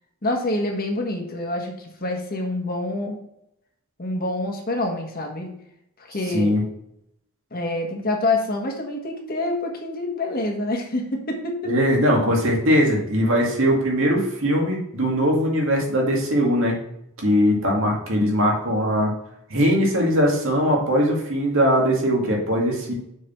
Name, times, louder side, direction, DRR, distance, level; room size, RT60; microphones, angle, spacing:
voice 1, 0.2-3.2 4.0-5.5 6.0-6.5 7.5-11.7, left 2 dB, 40° left, 2 dB, 1.4 m, -26 dB
voice 2, 11.7-16.8 17.2-19.1 19.5-22.9, equal, 60° right, -1 dB, 2.1 m, -20 dB
6.7 x 4.7 x 5.7 m, 0.78 s
head